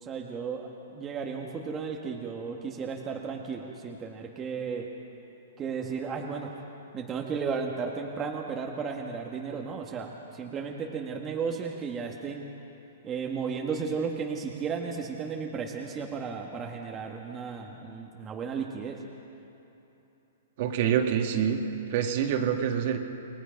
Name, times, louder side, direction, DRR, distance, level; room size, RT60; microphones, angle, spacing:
voice 1, 0.0-4.9 5.6-6.5 6.9-12.5 13.0-19.0, right 5 dB, 20° right, 0 dB, 1.5 m, -34 dB
voice 2, 20.6-21.6 21.9-23.0, right 8 dB, 50° right, 3 dB, 2.1 m, -26 dB
28.5 x 20.5 x 5.3 m, 3.0 s
hypercardioid pair, 155°, 0 cm